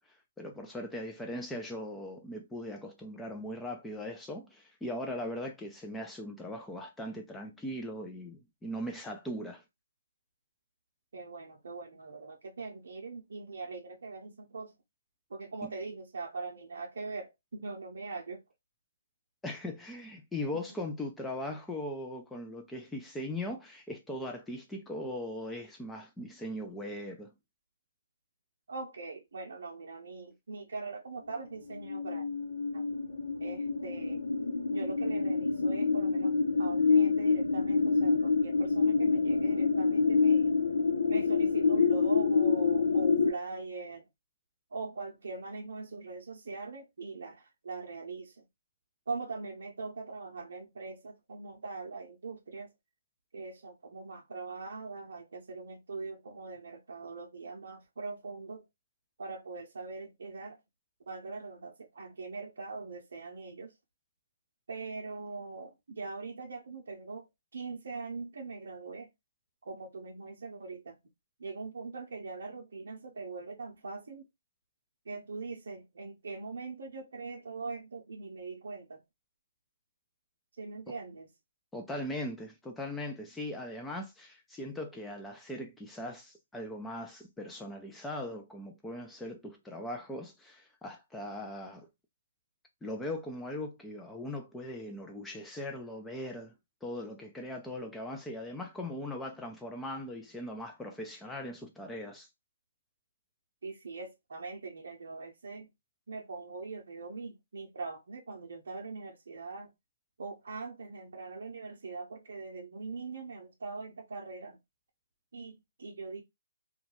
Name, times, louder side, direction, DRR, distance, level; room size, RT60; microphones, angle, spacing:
voice 1, 0.0-9.6 15.6-15.7 19.4-27.3 80.9-81.0 81.7-91.9 92.8-96.5 96.8-102.3, left 1 dB, 5° left, 0.3 m, -39 dB
voice 2, 11.1-14.7 15.3-18.4 28.7-32.3 32.7-32.8 33.4-34.2 34.7-40.5 41.1-44.0 44.7-48.4 49.1-52.7 53.3-58.6 59.2-60.6 61.1-63.7 64.7-67.3 67.5-69.1 69.6-70.9 71.4-74.2 75.1-79.0 80.6-81.3 103.6-105.7 106.1-109.7 110.2-114.6 115.3-116.2, right 3 dB, 70° right, 0.6 m, -42 dB
sound 1, 31.7-43.3, left 4 dB, 75° left, 0.4 m, -27 dB
2.3 x 2.2 x 3.0 m
figure-of-eight pair, 140°, 0 cm